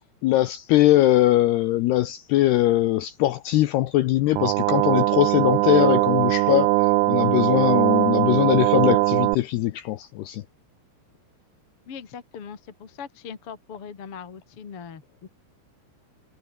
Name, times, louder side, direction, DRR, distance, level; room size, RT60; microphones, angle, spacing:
voice 1, 0.2-6.7 7.1-10.4, left 15 dB, 75° left, 2.4 m, -21 dB
sound 1, 4.4-9.4, right 20 dB, 90° right, 3.3 m, -20 dB
voice 2, 11.9-15.3, left 6 dB, 40° left, 2.5 m, -40 dB
omnidirectional pair, 5.7 m